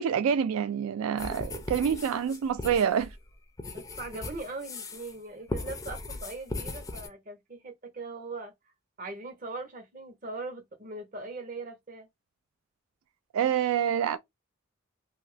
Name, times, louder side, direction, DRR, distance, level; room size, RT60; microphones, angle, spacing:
voice 1, 0.0-3.1 13.3-14.2, right 8 dB, 85° right, 0.3 m, -27 dB
sound 1, 1.2-5.2 5.5-7.1, left 2 dB, 15° left, 0.3 m, -38 dB
voice 2, 3.7-8.5 9.0-12.1, right 3 dB, 40° right, 0.8 m, -40 dB
2.6 x 2.4 x 3.2 m
head